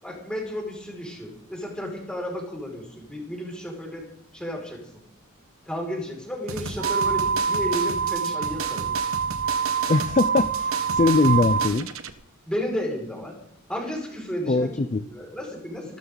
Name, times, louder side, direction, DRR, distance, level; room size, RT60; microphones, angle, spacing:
voice 1, 0.0-4.1 4.3-4.8 5.7-9.2 12.5-13.4 13.7-16.0, equal, 5° left, -2 dB, 5.7 m, -33 dB
sound 1, 6.5-12.1, right 5 dB, 75° right, 1.3 m, -34 dB
sound 2, 6.8-11.7, right 6 dB, 50° right, 0.7 m, -25 dB
voice 2, 9.9-11.9 14.5-15.0, left 3 dB, 35° left, 11 dB, 0.5 m, -21 dB
27.0 x 13.5 x 4.0 m, 0.69 s
head